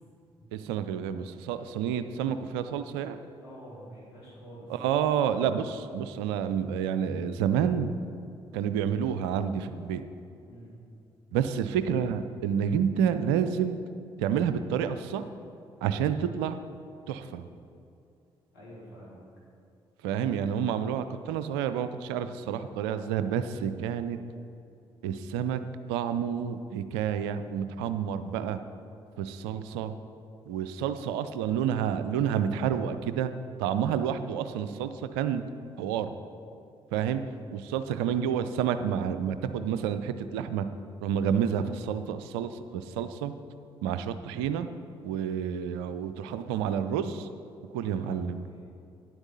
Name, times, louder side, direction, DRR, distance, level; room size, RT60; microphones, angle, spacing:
voice 1, 0.5-3.2 4.7-7.9 8.5-10.0 11.3-13.8 14.2-15.3 15.8-16.6 17.1-17.4 20.0-24.2 25.0-25.6 25.9-28.6 29.2-29.9 30.5-33.3 33.6-35.4 35.8-36.1 36.9-37.2 37.5-40.6 41.0-43.3 43.8-44.7 45.0-47.3 47.7-48.4, right 8 dB, 75° right, 11 dB, 0.5 m, -29 dB
voice 2, 3.4-4.7 10.4-10.8 18.5-19.2 47.9-48.6, right 1 dB, 80° left, -6 dB, 2.8 m, -48 dB
9.9 x 8.0 x 5.6 m, 2.5 s
figure-of-eight pair, 40°, 13 cm